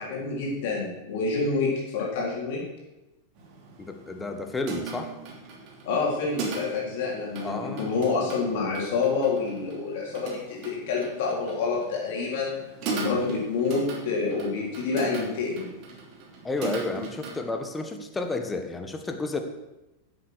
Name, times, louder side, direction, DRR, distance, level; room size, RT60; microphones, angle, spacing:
voice 1, 0.0-2.6 5.8-12.6 12.9-15.7, left 4 dB, 50° left, -3 dB, 4.2 m, -28 dB
sound 1, 3.4-17.4, right 4 dB, 40° right, 3.0 m, -38 dB
voice 2, 3.8-5.1 7.4-8.1 16.4-19.4, left 3 dB, 15° left, 5 dB, 1.4 m, -31 dB
11.0 x 8.0 x 6.5 m, 1.0 s
figure-of-eight pair, 90°, 0 cm